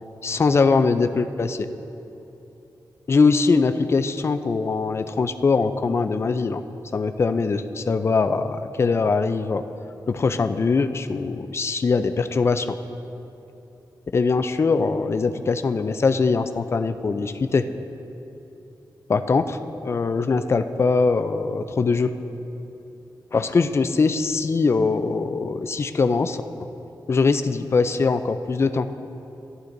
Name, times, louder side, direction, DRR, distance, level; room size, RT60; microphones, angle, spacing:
voice 1, 0.2-1.7 3.1-6.6 6.9-9.6 10.1-12.7 14.1-17.6 19.1-22.1 23.3-26.4 27.1-28.9, left 4 dB, 35° left, 9 dB, 0.4 m, -22 dB
14.5 x 11.0 x 2.6 m, 3.0 s
wide cardioid pair, 135°, 8 cm